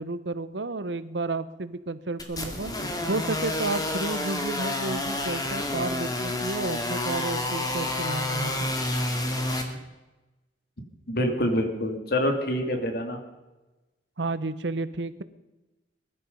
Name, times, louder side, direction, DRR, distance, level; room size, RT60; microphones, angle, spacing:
voice 1, 0.0-2.7 3.1-8.7 14.2-15.2, right 2 dB, 75° right, 14 dB, 1.0 m, -32 dB
sound 1, 2.2-9.6, left 1 dB, 20° left, 2.2 m, -29 dB
voice 2, 11.1-13.2, left 1 dB, 60° left, 5 dB, 2.6 m, -26 dB
21.0 x 12.0 x 5.4 m, 1.1 s
head